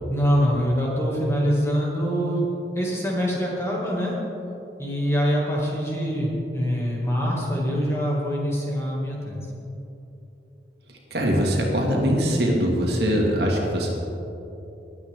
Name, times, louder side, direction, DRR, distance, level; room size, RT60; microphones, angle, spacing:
voice 1, 0.1-2.4 2.7-4.2 4.8-9.5, equal, 15° left, -4 dB, 2.3 m, -24 dB
voice 2, 11.1-13.9, equal, 70° right, -1 dB, 2.2 m, -22 dB
20.5 x 8.6 x 3.7 m, 2.9 s
head